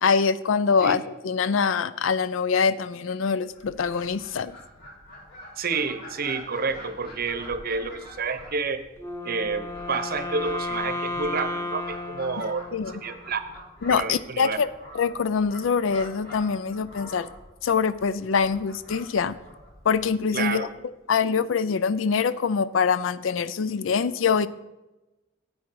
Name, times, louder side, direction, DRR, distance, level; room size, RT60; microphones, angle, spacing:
voice 1, 0.0-4.5 12.7-12.9 13.8-14.7 14.9-17.3 17.6-19.4 19.9-20.7 21.1-24.5, left 5 dB, 75° left, 16 dB, 0.4 m, -24 dB
Fowl, 3.5-20.8, left 1 dB, 55° left, 4.0 m, -46 dB
voice 2, 5.6-8.8 9.2-9.6 9.9-13.4 13.9-14.6 20.3-20.7, right 4 dB, 50° right, 10 dB, 0.8 m, -29 dB
Wind instrument woodwind instrument, 9.0-13.2, left 2 dB, 15° left, 0.7 m, -33 dB
8.8 x 8.4 x 4.6 m, 1.0 s
head